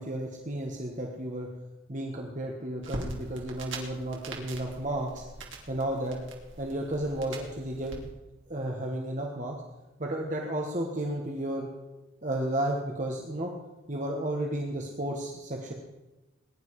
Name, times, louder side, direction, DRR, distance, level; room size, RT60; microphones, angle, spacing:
voice 1, 0.0-1.5 1.9-5.2 5.7-6.2 6.6-8.1 8.5-9.6 10.0-11.7 12.2-13.5 13.9-15.7, right 1 dB, 35° right, 0 dB, 1.5 m, -32 dB
sound 1, 2.8-8.0, right 2 dB, 65° right, 2.8 m, -42 dB
21.0 x 10.5 x 4.8 m, 1.1 s
head